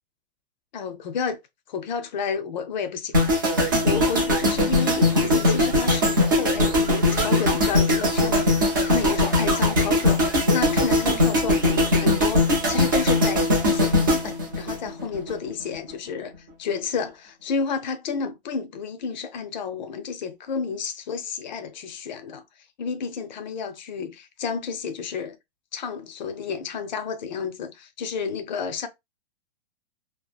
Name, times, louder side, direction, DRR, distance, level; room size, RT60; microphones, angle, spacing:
voice 1, 0.7-1.4 1.7-3.4 3.8-16.3 16.6-22.4 22.8-25.4 25.7-28.9, left 5 dB, 45° left, 0.5 m, -31 dB
sound 1, 3.1-15.3 15.6-15.9, left 1 dB, 20° right, 0.3 m, -21 dB
2.8 x 2.4 x 2.3 m
hypercardioid pair, 170°, 33 cm